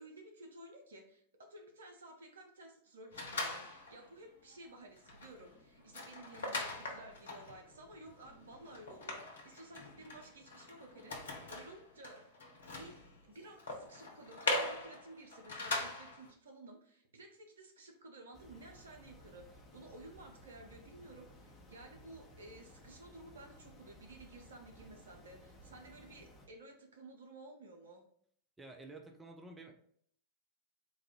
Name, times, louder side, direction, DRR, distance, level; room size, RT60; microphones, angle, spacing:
voice 1, 0.0-12.2 12.7-13.0 13.2-28.0, right 2 dB, 65° right, 2 dB, 0.9 m, -54 dB
sound 1, 3.1-4.1 4.5-4.7 5.0-16.3, left 2 dB, 65° left, 0.9 m, -41 dB
sound 2, 18.3-26.5, equal, 15° left, 1.1 m, -58 dB
voice 2, 28.6-29.7, right 2 dB, 15° right, 3 dB, 0.5 m, -51 dB
4.0 x 2.6 x 4.4 m, 0.63 s
figure-of-eight pair, 90°, 0 cm